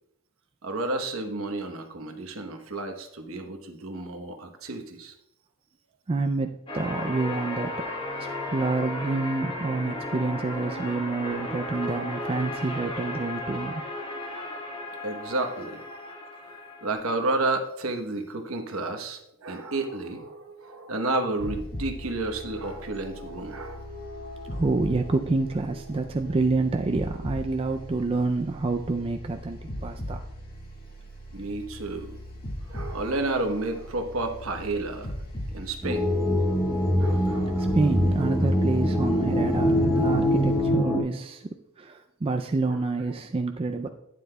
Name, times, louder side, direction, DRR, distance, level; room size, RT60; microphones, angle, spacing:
voice 1, 0.6-5.1 15.0-15.8 16.8-23.8 31.3-32.2 32.7-35.1 35.5-36.0 37.0-37.8 38.4-38.5, right 2 dB, 70° right, 5 dB, 1.0 m, -31 dB
voice 2, 6.1-7.9 8.2-13.8 24.4-30.3 37.1-37.3 37.7-41.5 41.8-43.9, right 3 dB, 25° right, 5 dB, 0.3 m, -28 dB
sound 1, 6.7-16.9, left 1 dB, 25° left, 1.1 m, -35 dB
sound 2, 21.4-40.6, equal, 40° left, 1.9 m, -39 dB
sound 3, 35.8-41.0, equal, ahead, 1.4 m, -23 dB
11.5 x 9.4 x 2.2 m, 0.80 s
head